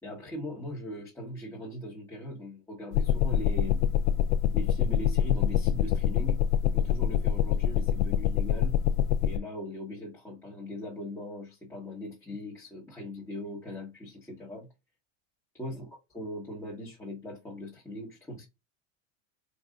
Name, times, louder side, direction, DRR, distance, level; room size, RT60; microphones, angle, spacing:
voice 1, 0.0-3.8 4.5-8.7 9.2-14.7 15.5-15.9 16.1-18.5, equal, 5° left, 1.3 m, -40 dB
sound 1, 2.9-9.4, left 9 dB, 90° left, 0.6 m, -25 dB
4.8 x 2.6 x 3.7 m
supercardioid pair, 130°, 39 cm